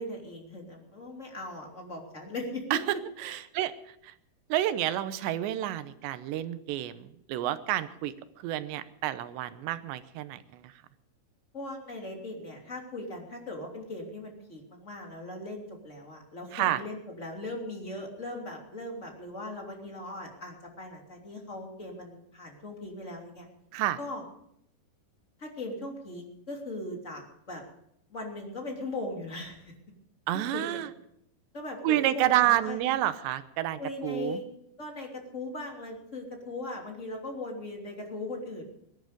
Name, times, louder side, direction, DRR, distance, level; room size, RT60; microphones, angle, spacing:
voice 1, 0.0-3.0 11.5-23.5 24.0-24.2 25.4-27.6 28.1-29.7 30.3-30.9 31.5-32.8 33.8-34.5 34.8-38.6, left 2 dB, 20° left, 1 dB, 2.7 m, -39 dB
voice 2, 3.2-3.7 4.5-8.1 8.4-10.4 16.5-16.8 23.7-24.0 30.3-30.9 31.8-34.4, right 13 dB, 85° right, 12 dB, 3.1 m, -29 dB
20.5 x 11.5 x 5.2 m, 0.75 s
omnidirectional pair, 4.9 m